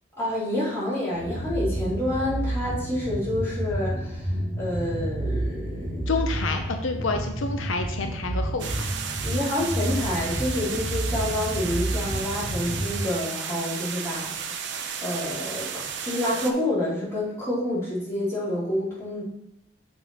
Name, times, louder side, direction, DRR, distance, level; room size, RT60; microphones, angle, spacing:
voice 1, 0.2-6.1 9.2-14.7 15.0-19.2, left 1 dB, 15° left, -9 dB, 2.7 m, -28 dB
sound 1, 1.1-12.9, right 1 dB, 70° left, 2.8 m, -30 dB
voice 2, 6.1-8.9, left 4 dB, 85° left, 5 dB, 0.6 m, -29 dB
sound 2, 8.6-16.5, right 7 dB, 60° right, 0.6 m, -33 dB
6.6 x 4.5 x 4.2 m, 0.80 s
head